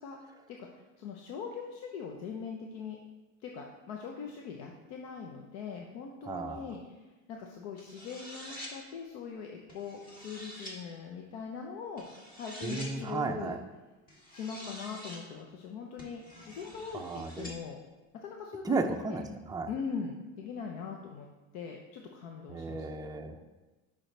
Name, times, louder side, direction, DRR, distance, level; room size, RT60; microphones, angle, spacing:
voice 1, 0.5-3.0 3.4-12.0 12.3-13.6 14.3-17.8 18.1-19.2 19.7-21.3 21.5-22.8, left 6 dB, 70° left, 1 dB, 0.9 m, -41 dB
voice 2, 6.3-6.7 12.6-13.6 16.9-17.5 18.6-19.7 22.5-23.4, right 3 dB, 10° right, 4 dB, 0.4 m, -34 dB
sound 1, 7.8-8.7 9.7-10.8 12.0-12.9 14.1-15.2 16.0-17.6, equal, 20° left, 1.8 m, -47 dB
8.9 x 5.7 x 3.3 m, 1.1 s
cardioid pair, 135°, 38 cm